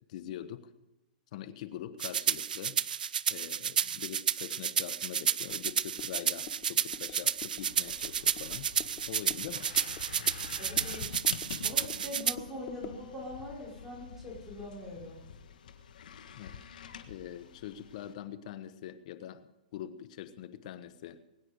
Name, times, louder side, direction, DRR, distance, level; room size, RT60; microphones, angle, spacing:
voice 1, 0.1-0.7 1.3-2.8 3.3-8.7 9.1-9.7 16.3-16.6 17.1-21.2, left 11 dB, 55° left, 14 dB, 1.2 m, -43 dB
sound 1, 2.0-12.3, right 8 dB, 85° right, 0.4 m, -31 dB
sound 2, 5.5-13.1, left 11 dB, 40° left, 1.0 m, -50 dB
sound 3, 7.6-18.1, left 7 dB, 75° left, 1.5 m, -47 dB
voice 2, 10.6-11.2 11.6-15.2, left 1 dB, 10° right, -4 dB, 4.8 m, -42 dB
22.0 x 9.7 x 5.1 m, 0.98 s
hypercardioid pair, 135°, 5 cm